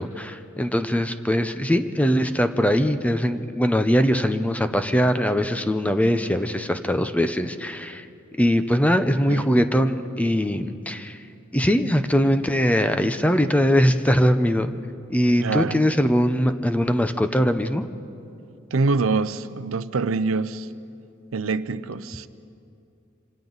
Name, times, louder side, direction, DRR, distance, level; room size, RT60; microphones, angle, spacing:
voice 1, 0.0-8.0 8.4-11.2 11.5-14.7 15.1-17.8, equal, 5° left, 0.7 m, -21 dB
voice 2, 9.3-9.6 15.4-15.8 18.7-20.7 21.3-22.3, right 4 dB, 80° right, 0.6 m, -25 dB
26.5 x 25.5 x 4.0 m
head